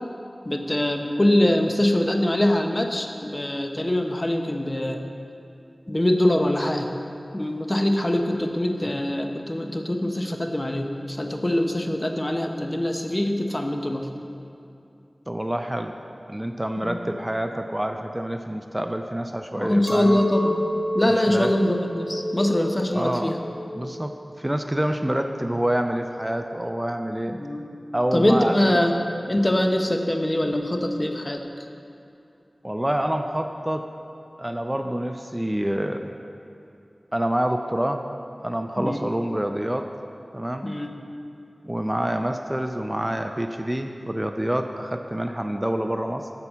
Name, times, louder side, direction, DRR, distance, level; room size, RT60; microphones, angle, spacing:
voice 1, 0.4-5.0 5.9-6.9 7.3-14.1 16.8-17.0 19.5-20.6 20.9-23.4 27.3-27.7 28.1-28.9 29.3-31.5 38.8-39.1 40.6-41.0, left 1 dB, 30° left, 4 dB, 0.8 m, -23 dB
voice 2, 15.3-16.0 16.3-20.2 21.3-21.5 22.9-23.3 23.7-27.4 27.9-28.7 32.6-33.9 34.4-36.1 37.1-38.0 38.4-39.9 40.3-40.7 41.6-46.3, right 1 dB, 20° right, 6 dB, 0.4 m, -27 dB
Chink clink, 19.9-25.3, left 1 dB, 15° left, 1.6 m, -29 dB
7.9 x 5.6 x 7.2 m, 2.7 s
wide cardioid pair, 50°, 0 cm